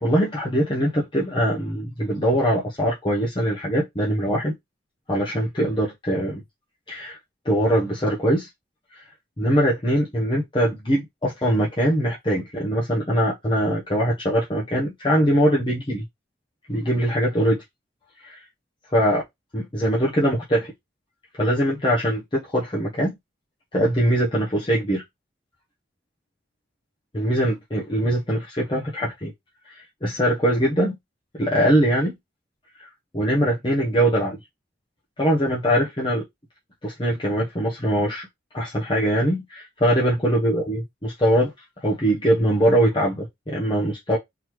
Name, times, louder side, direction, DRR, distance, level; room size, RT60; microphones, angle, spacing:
voice 1, 0.0-4.6 5.1-6.4 6.9-7.2 7.4-8.5 8.9-9.0 9.4-16.0 16.7-17.6 18.2-18.4 18.9-19.2 19.5-20.7 21.4-23.1 23.7-25.0 27.1-29.3 29.7-31.0 31.4-32.1 32.8-32.9 33.1-34.4 35.2-36.2 36.8-38.3 38.5-41.5 41.8-44.2, equal, 25° left, 0.9 m, -22 dB
3.9 x 3.1 x 3.0 m
head